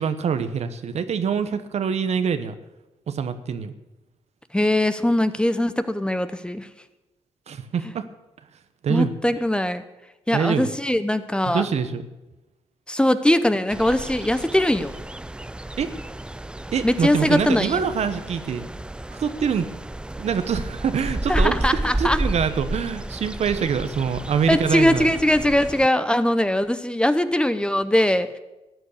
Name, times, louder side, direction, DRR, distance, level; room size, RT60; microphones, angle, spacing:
voice 1, 0.0-2.5 3.1-3.7 7.5-8.1 8.8-9.2 10.3-10.7 11.4-12.1 15.8-15.9 16.7-18.6 19.1-19.7 20.2-25.1, right 6 dB, 70° right, 10 dB, 1.0 m, -25 dB
voice 2, 4.5-6.7 8.9-9.8 10.3-11.7 12.9-14.9 16.8-17.8 21.3-22.2 24.5-28.4, left 1 dB, 10° left, 12 dB, 0.8 m, -21 dB
sound 1, 13.7-25.9, right 1 dB, 10° right, 0.4 m, -31 dB
13.5 x 9.4 x 6.6 m, 1.0 s
cardioid pair, 85°, 11 cm